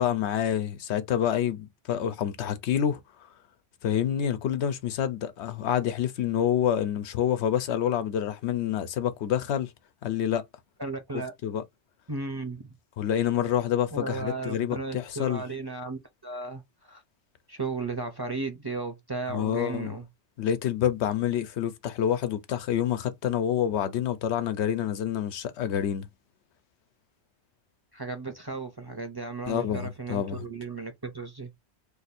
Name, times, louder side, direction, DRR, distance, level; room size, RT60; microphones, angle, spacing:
voice 1, 0.0-3.0 3.8-9.7 10.0-10.4 11.4-11.6 13.0-15.4 19.3-19.9 20.4-26.1 29.5-30.4, left 10 dB, 80° left, 0.9 m, -27 dB
voice 2, 10.8-11.3 12.1-12.7 13.9-17.0 17.5-20.1 27.9-31.5, right 3 dB, 25° right, 0.7 m, -35 dB
2.7 x 2.5 x 4.1 m
omnidirectional pair, 1.1 m